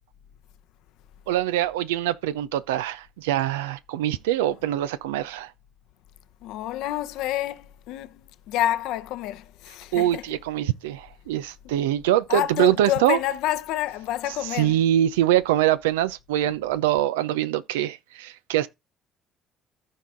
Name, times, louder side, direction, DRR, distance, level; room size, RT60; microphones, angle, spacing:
voice 1, 1.3-5.5 9.9-13.2 14.3-18.7, right 12 dB, 85° right, 0.5 m, -24 dB
voice 2, 6.4-8.2 8.5-10.2 12.3-14.8, left 13 dB, 70° left, 0.8 m, -28 dB
14.0 x 4.8 x 3.7 m
hypercardioid pair, 60°, 0 cm